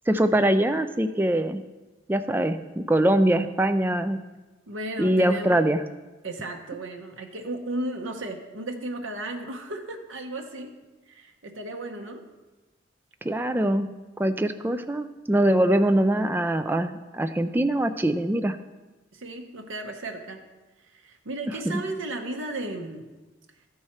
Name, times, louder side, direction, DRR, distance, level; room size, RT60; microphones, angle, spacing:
voice 1, 0.1-1.6 2.1-4.2 5.0-5.8 13.2-13.9 14.2-18.6 21.7-21.8, right 1 dB, 10° right, 9 dB, 0.3 m, -23 dB
voice 2, 4.7-5.6 6.2-10.8 11.1-12.2 19.1-20.4 20.9-23.1, right 1 dB, 85° right, 3 dB, 0.9 m, -34 dB
13.0 x 4.8 x 4.3 m, 1.2 s
head